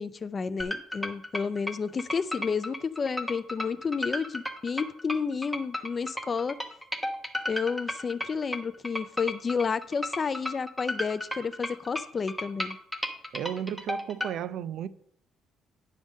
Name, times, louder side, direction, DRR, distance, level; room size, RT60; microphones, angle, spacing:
voice 1, 0.0-6.6 7.5-12.8, left 5 dB, 30° left, 0.3 m, -31 dB
sound 1, 0.6-14.3, left 1 dB, ahead, 0.8 m, -34 dB
voice 2, 13.3-14.9, right 9 dB, 65° right, 0.4 m, -33 dB
10.0 x 3.6 x 6.3 m
cardioid pair, 160°, 0 cm